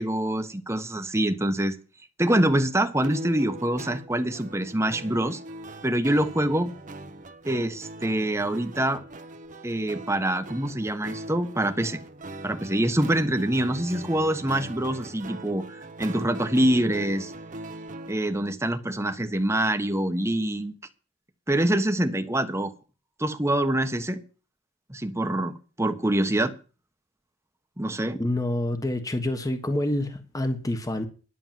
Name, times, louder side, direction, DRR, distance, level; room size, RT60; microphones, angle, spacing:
voice 1, 0.0-1.8 2.2-5.4 5.8-6.7 7.4-9.0 9.6-12.0 12.4-17.3 18.1-20.7 21.5-22.7 23.2-24.2 24.9-26.5 27.8-28.2, right 1 dB, 15° right, 1.2 m, -25 dB
sound 1, 3.0-18.3, right 1 dB, 40° right, 1.1 m, -40 dB
voice 2, 28.1-31.1, left 1 dB, 20° left, 1.3 m, -27 dB
11.5 x 6.9 x 7.5 m
head